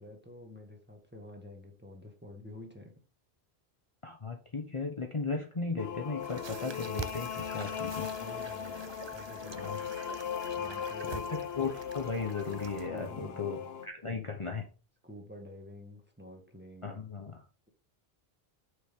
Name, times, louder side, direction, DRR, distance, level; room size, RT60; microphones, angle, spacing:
voice 1, 0.0-2.9 8.2-10.0 10.6-11.3 12.9-13.7 15.0-17.0, left 1 dB, 10° right, 3 dB, 1.8 m, -49 dB
voice 2, 4.0-8.1 9.5-9.8 11.1-14.7 16.8-17.4, left 4 dB, 30° left, 3 dB, 1.0 m, -36 dB
sound 1, 5.8-13.9, left 8 dB, 75° left, 1.0 m, -38 dB
sound 2, 6.2-12.9, right 6 dB, 40° right, 0.4 m, -46 dB
9.0 x 6.4 x 3.6 m, 0.35 s
omnidirectional pair, 1.0 m